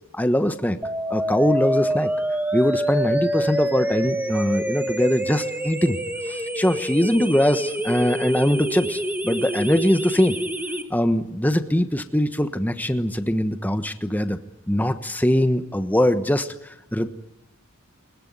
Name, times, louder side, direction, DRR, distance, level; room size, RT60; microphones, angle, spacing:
voice 1, 0.1-0.8 1.1-2.1 2.5-6.0 6.3-10.4 10.9-14.4 14.7-17.1, equal, 10° left, 9 dB, 1.2 m, -22 dB
sound 1, 0.8-10.8, equal, 10° right, 1.4 m, -26 dB
21.5 x 21.0 x 9.6 m, 0.84 s
head